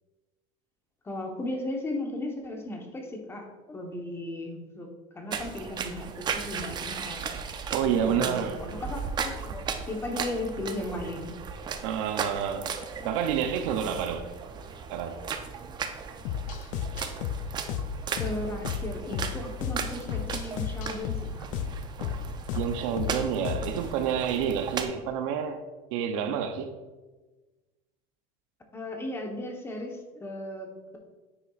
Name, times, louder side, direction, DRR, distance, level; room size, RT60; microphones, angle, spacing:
voice 1, 1.0-4.9 5.1-7.2 7.8-11.3 13.0-13.1 18.2-21.5 28.7-31.0, left 1 dB, 15° left, 1.0 m, -36 dB
sound 1, 5.3-24.8, right 6 dB, 25° right, 0.5 m, -36 dB
voice 2, 7.7-8.6 11.8-12.7 13.0-14.3 14.9-15.2 22.6-25.6 25.9-26.8, right 8 dB, 80° right, 0.7 m, -29 dB
sound 2, 16.2-23.9, left 8 dB, 55° left, 0.5 m, -34 dB
9.4 x 5.7 x 2.4 m
cardioid pair, 140°, 16 cm